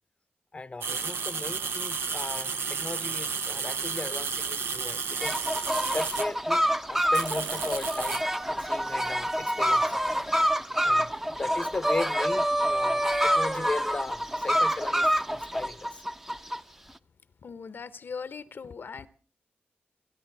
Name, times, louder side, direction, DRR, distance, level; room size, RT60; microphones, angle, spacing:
voice 1, 0.5-5.4 5.9-6.6 6.9-10.0 10.8-16.0, left 3 dB, 30° left, 0.7 m, -37 dB
sound 1, 0.8-6.3 7.1-8.2, right 5 dB, 90° right, 0.9 m, -32 dB
sound 2, 5.2-16.6, equal, 10° right, 0.7 m, -27 dB
voice 2, 17.4-19.1, left 5 dB, 65° left, 0.8 m, -39 dB
26.0 x 10.5 x 4.6 m
cardioid pair, 70°, 4 cm